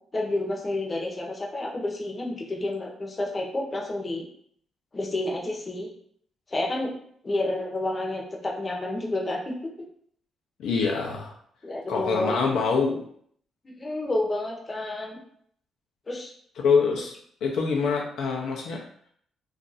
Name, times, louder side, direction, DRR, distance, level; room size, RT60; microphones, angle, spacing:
voice 1, 0.1-4.2 4.9-5.9 6.5-6.9 7.2-9.7 11.6-12.5 13.6-15.2 16.1-16.3, left 2 dB, 30° left, -1 dB, 0.8 m, -30 dB
voice 2, 10.6-11.3 11.9-13.0 16.6-17.1 17.4-18.8, left 5 dB, 80° left, 0 dB, 0.6 m, -25 dB
2.5 x 2.4 x 4.0 m, 0.63 s
cardioid pair, 90°, 0 cm